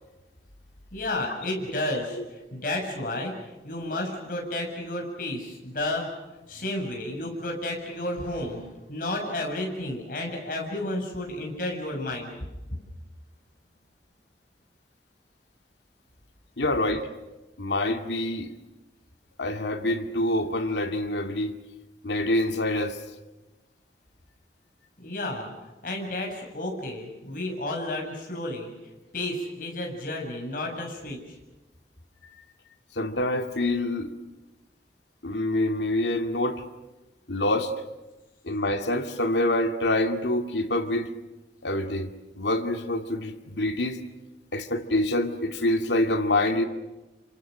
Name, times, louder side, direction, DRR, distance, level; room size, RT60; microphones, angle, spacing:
voice 1, 0.9-3.3 3.6-6.1 6.5-12.4 25.0-25.5 25.8-28.7 29.1-31.2, left 1 dB, 50° left, 7.2 m, -32 dB
voice 2, 16.6-17.1 17.6-18.5 19.4-21.5 22.0-23.0 33.0-34.1 35.2-36.6 37.3-37.7 38.4-41.1 41.6-42.1 42.4-44.0 44.5-46.6, left 1 dB, 85° left, 2.3 m, -26 dB
29.0 x 26.0 x 6.6 m
head